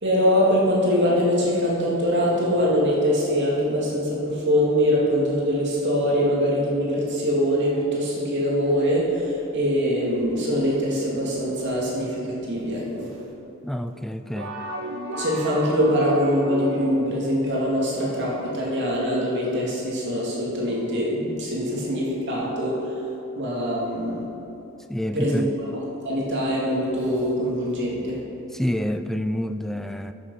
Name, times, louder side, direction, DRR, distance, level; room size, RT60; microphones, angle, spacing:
voice 1, 0.0-12.2 12.5-13.1 15.1-23.0 23.4-24.2 25.1-25.4 25.7-28.2, equal, 55° right, -4 dB, 2.3 m, -23 dB
voice 2, 13.6-14.5 24.9-25.6 28.5-30.1, equal, ahead, 8 dB, 0.3 m, -28 dB
sound 1, 14.4-17.2, right 1 dB, 75° right, 1.2 m, -33 dB
13.5 x 6.6 x 5.5 m, 2.9 s
head